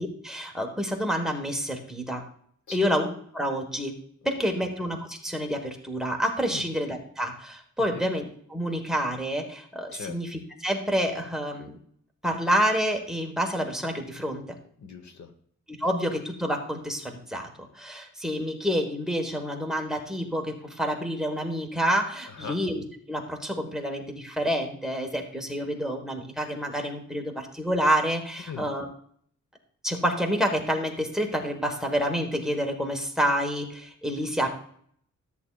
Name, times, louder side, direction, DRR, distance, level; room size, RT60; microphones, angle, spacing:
voice 1, 0.0-2.2 2.7-3.1 3.3-4.0 4.2-11.8 12.2-14.6 15.7-28.9 29.8-34.5, equal, ahead, 3 dB, 1.3 m, -28 dB
voice 2, 14.8-15.3 22.3-22.6 28.5-28.7, left 6 dB, 70° left, 7 dB, 1.1 m, -39 dB
13.5 x 8.6 x 2.4 m, 0.62 s
wide cardioid pair, 145°, 29 cm